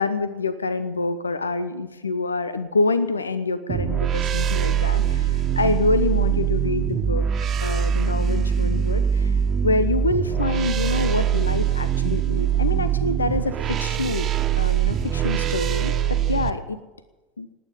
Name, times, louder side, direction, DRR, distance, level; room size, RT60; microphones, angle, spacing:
voice 1, 0.0-7.3 7.6-14.3 14.6-16.8 17.4-17.5, left 3 dB, 90° left, 13 dB, 0.8 m, -26 dB
sound 1, 3.7-16.5, right 9 dB, 40° right, 1.4 m, -23 dB
19.0 x 9.4 x 8.1 m, 1.1 s
figure-of-eight pair, 75°, 0 cm